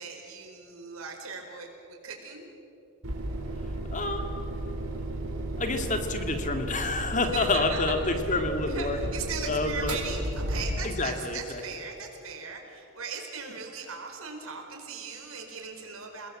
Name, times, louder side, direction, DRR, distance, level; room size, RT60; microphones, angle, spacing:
voice 1, 0.0-2.4 7.3-8.4 8.7-16.3, right 5 dB, 70° right, 3 dB, 4.7 m, -39 dB
sound 1, 3.0-11.1, right 1 dB, 90° right, 4.4 m, -34 dB
voice 2, 3.9-4.2 5.6-9.0 9.5-10.0 10.8-11.6, left 3 dB, 35° left, 5 dB, 2.2 m, -28 dB
29.5 x 20.5 x 7.7 m, 2.9 s
head